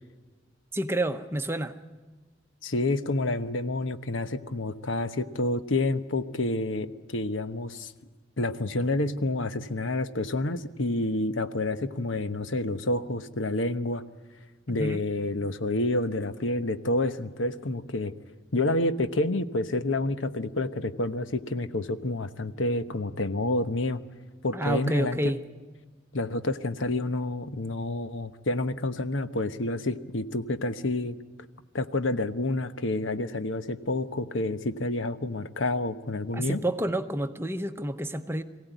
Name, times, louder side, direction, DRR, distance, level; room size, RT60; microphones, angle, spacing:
voice 1, 0.7-1.8 14.8-15.0 24.5-25.4 36.3-38.4, right 1 dB, 10° right, 0.8 m, -29 dB
voice 2, 2.6-7.9 8.4-14.0 14.7-18.1 18.5-24.0 24.4-25.3 26.1-31.2 31.7-36.6, left 2 dB, 80° left, 1.1 m, -29 dB
23.5 x 16.5 x 9.2 m
head